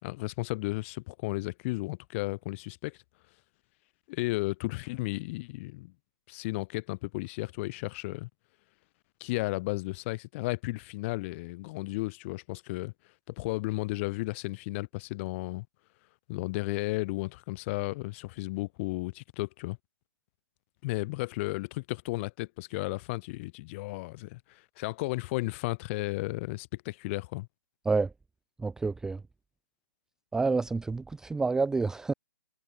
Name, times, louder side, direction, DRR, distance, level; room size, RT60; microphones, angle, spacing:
voice 1, 0.0-3.0 4.1-5.9 6.3-8.3 9.2-12.9 13.3-15.7 16.3-19.8 20.8-27.5, left 22 dB, 35° left, 5.4 m, -34 dB
voice 2, 28.6-29.2 30.3-32.1, right 4 dB, 5° right, 0.5 m, -28 dB
hypercardioid pair, 145°, 12 cm